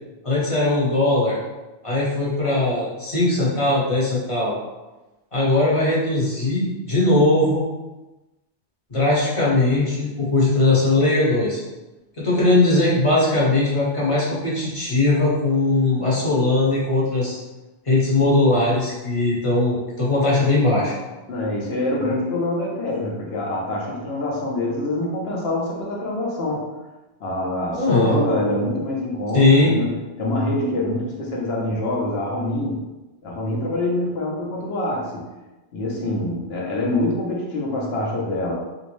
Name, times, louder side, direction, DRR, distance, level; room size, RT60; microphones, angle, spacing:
voice 1, 0.2-1.4 1.8-4.5 5.3-7.7 8.9-11.6 12.2-17.4 17.9-20.9 27.7-28.2 29.3-29.7, left 2 dB, 35° left, -6 dB, 0.9 m, -19 dB
voice 2, 21.3-26.6 27.2-29.9 30.2-32.8 33.2-35.3 35.7-38.5, left 1 dB, 65° left, -3 dB, 1.0 m, -25 dB
3.0 x 2.7 x 3.0 m, 1.1 s
omnidirectional pair, 1.1 m